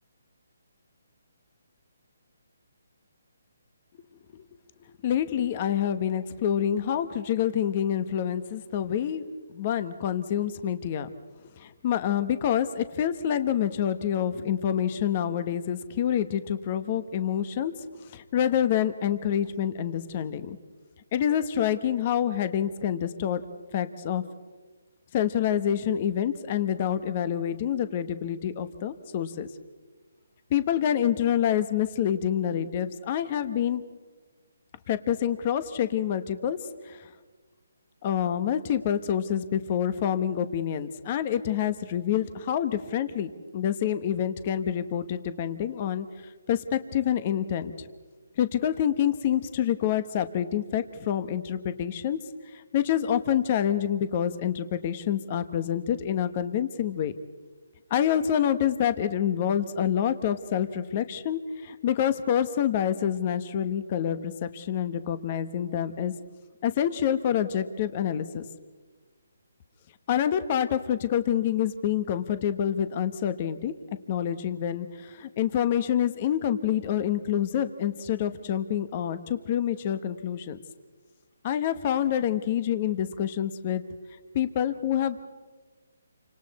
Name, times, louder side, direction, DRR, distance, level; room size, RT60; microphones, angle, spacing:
voice 1, 5.0-9.2 9.5-11.1 11.6-17.7 18.0-20.6 21.1-23.4 23.7-24.2 25.1-29.5 30.5-33.8 34.9-36.6 36.8-37.1 38.0-47.9 48.4-52.2 52.5-57.1 57.9-66.1 66.6-68.5 70.1-73.7 74.1-80.6 81.4-83.8 84.3-85.2, left 9 dB, 30° left, 12 dB, 1.1 m, -27 dB
29.5 x 25.5 x 4.2 m, 1.3 s
hypercardioid pair, 160°, 0 cm